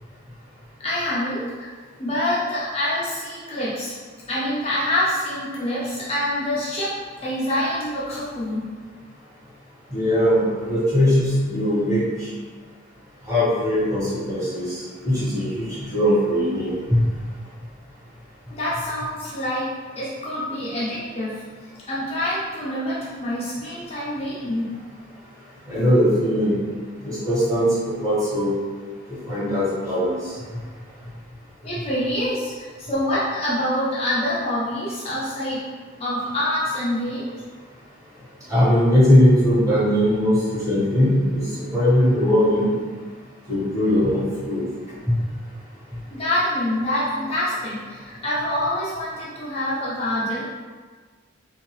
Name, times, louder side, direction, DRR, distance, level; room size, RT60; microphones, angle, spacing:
voice 1, 0.8-1.5 2.0-3.9 4.3-8.7 18.5-24.7 31.6-35.6 36.0-37.3 46.1-50.5, left 1 dB, 30° left, -8 dB, 0.6 m, -26 dB
voice 2, 9.9-12.0 13.3-14.8 15.0-17.0 25.7-26.6 27.0-27.7 28.0-28.5 29.3-30.2 38.5-42.7 43.5-44.6 45.1-45.2, equal, 15° right, -10 dB, 1.4 m, -20 dB
3.6 x 2.7 x 3.0 m, 1.5 s
head